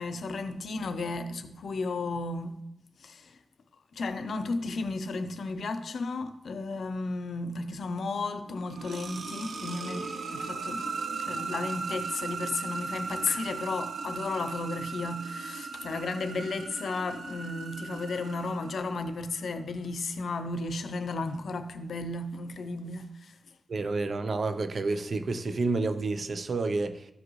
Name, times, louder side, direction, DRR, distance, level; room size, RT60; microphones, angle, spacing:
voice 1, 0.0-2.6 3.0-3.4 3.9-23.4, left 3 dB, 75° left, 0.6 m, -34 dB
sound 1, 8.5-19.2, right 4 dB, 85° right, 0.8 m, -37 dB
voice 2, 23.7-27.1, right 3 dB, 55° right, 0.6 m, -29 dB
14.0 x 5.1 x 3.1 m
wide cardioid pair, 115°, 0 cm